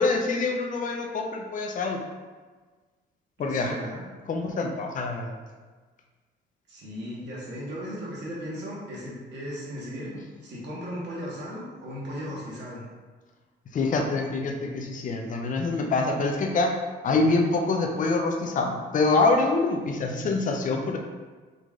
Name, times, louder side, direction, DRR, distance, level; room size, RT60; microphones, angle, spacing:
voice 1, 0.0-2.0 3.4-3.8 4.3-5.3 13.7-16.7 17.0-21.0, left 3 dB, 40° left, 2 dB, 0.5 m, -25 dB
voice 2, 3.5-4.0 6.7-10.1 10.4-12.8, equal, 60° right, -6 dB, 1.3 m, -36 dB
3.9 x 3.1 x 2.4 m, 1.4 s
cardioid pair, 90°, 20 cm